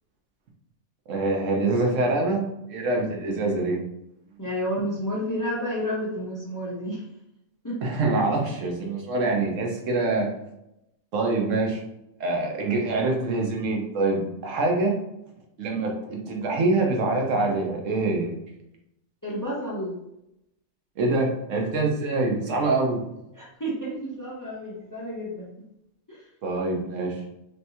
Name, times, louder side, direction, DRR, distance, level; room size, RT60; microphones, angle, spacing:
voice 1, 1.1-2.4 2.7-3.8 7.8-10.3 11.1-11.8 12.2-15.0 15.6-18.3 21.0-23.0 26.4-27.2, right 2 dB, 65° right, 0 dB, 1.1 m, -25 dB
voice 2, 4.4-7.0 7.6-7.8 19.2-20.0 23.3-25.5 26.1-26.2, equal, 30° left, -4 dB, 0.3 m, -30 dB
3.3 x 2.9 x 2.6 m, 0.83 s
omnidirectional pair, 1.5 m